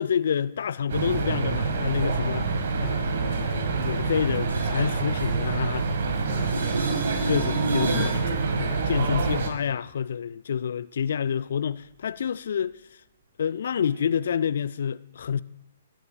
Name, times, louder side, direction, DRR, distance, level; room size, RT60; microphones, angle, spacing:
voice 1, 0.0-2.5 2.8-5.9 6.2-8.2 8.6-12.8 13.4-15.4, left 8 dB, 60° left, 0.3 m, -28 dB
sound 1, 0.9-9.5, right 4 dB, 55° right, 1.6 m, -27 dB
sound 2, 4.0-6.1 6.3-8.2 14.0-14.1, right 2 dB, 75° right, 4.9 m, -32 dB
21.0 x 10.5 x 2.3 m
figure-of-eight pair, 120°, 0 cm